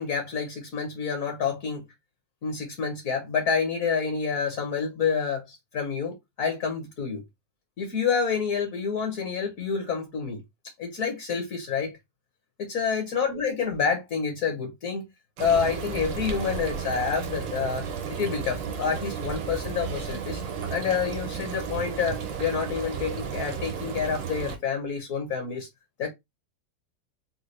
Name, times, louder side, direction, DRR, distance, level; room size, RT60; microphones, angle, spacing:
voice 1, 0.0-1.8 2.4-7.2 7.8-10.4 10.8-11.9 12.6-15.1 15.4-20.4 20.7-25.7 26.0-26.1, left 6 dB, 55° left, 1.1 m, -28 dB
Frying (food), 15.4-24.6, right 6 dB, 80° right, 1.6 m, -33 dB
4.2 x 2.2 x 3.1 m
omnidirectional pair, 2.0 m